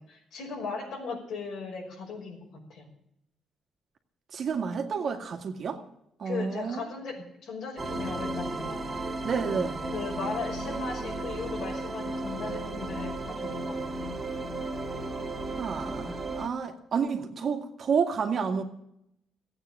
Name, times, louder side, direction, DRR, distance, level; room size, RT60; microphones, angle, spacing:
voice 1, 0.0-2.9 6.2-8.9 9.9-14.1, left 4 dB, 70° left, 1 dB, 5.6 m, -38 dB
voice 2, 4.3-5.8 6.2-6.8 9.2-9.8 15.5-18.6, right 6 dB, 55° right, 5 dB, 2.1 m, -30 dB
sound 1, 7.8-16.5, right 2 dB, 25° right, 2.7 m, -34 dB
15.0 x 8.9 x 8.5 m, 0.77 s
cardioid pair, 90°, 0 cm